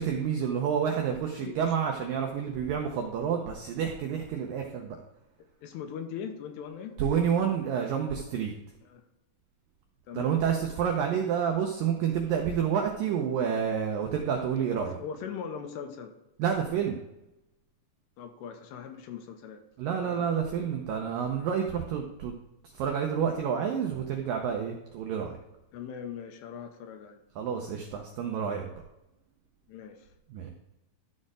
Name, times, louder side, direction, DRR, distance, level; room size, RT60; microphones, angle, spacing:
voice 1, 0.0-5.0 7.0-8.5 10.1-15.0 16.4-17.0 19.8-22.3 22.7-25.4 27.4-28.7 30.3-30.5, right 7 dB, 85° right, 2 dB, 1.9 m, -29 dB
voice 2, 5.6-7.0 8.9-9.0 10.1-10.4 14.7-16.1 18.2-19.6 20.0-20.3 25.7-27.2 29.7-30.1, left 7 dB, 80° left, 6 dB, 2.9 m, -40 dB
12.5 x 4.3 x 4.9 m, 0.92 s
omnidirectional pair, 5.0 m